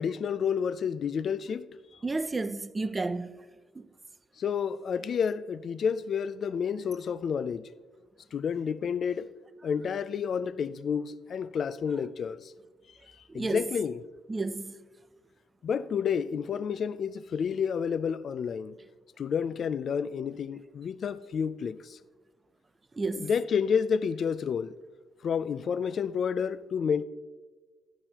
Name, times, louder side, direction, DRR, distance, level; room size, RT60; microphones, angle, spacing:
voice 1, 0.0-1.7 4.4-7.7 8.3-9.3 9.6-12.5 13.3-14.0 15.6-18.8 19.2-22.0 23.1-24.7 25.2-27.0, left 7 dB, 55° left, 0.4 m, -30 dB
voice 2, 2.0-3.4 3.8-3.9 13.3-13.7 14.3-14.7 23.0-23.3, right 3 dB, 25° right, 0.5 m, -31 dB
14.0 x 10.0 x 2.9 m
cardioid pair, 90°, 0 cm